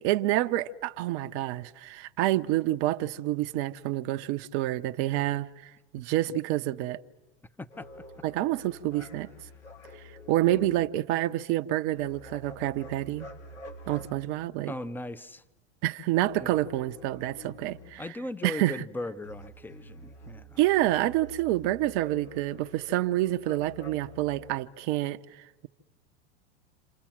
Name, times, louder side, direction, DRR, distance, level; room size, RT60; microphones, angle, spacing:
voice 1, 0.0-5.5 5.9-7.0 8.2-9.3 9.9-13.3 13.9-14.7 15.8-18.0 18.4-18.8 20.6-25.2, right 15 dB, 50° right, 0.9 m, -28 dB
voice 2, 7.6-7.9 14.7-15.4 16.4-16.6 18.0-20.6, left 1 dB, 5° left, 0.9 m, -38 dB
sound 1, 7.7-10.8 11.9-14.5 16.1-18.0 19.2-24.6, left 1 dB, 90° left, 6.2 m, -47 dB
28.0 x 27.0 x 7.4 m
hypercardioid pair, 95°, 33 cm